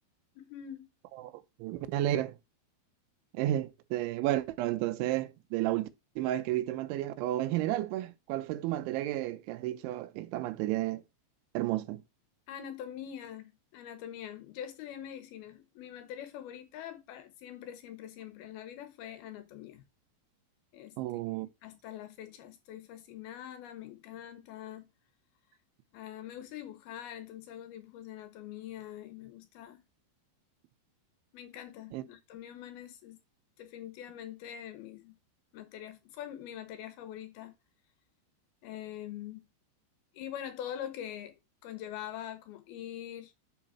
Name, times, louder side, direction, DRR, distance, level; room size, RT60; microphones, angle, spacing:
voice 1, 0.4-0.9 12.5-19.8 20.7-21.0 21.6-24.9 25.9-29.8 31.3-33.2 33.6-35.2 35.5-37.5 38.6-39.5 40.1-43.3, left 10 dB, 75° left, 2.4 m, -44 dB
voice 2, 1.6-2.3 3.3-5.9 6.2-11.0 11.5-12.0 21.0-21.5 31.9-32.0, right 14 dB, 85° right, 3.2 m, -32 dB
9.8 x 5.0 x 4.4 m
omnidirectional pair, 5.4 m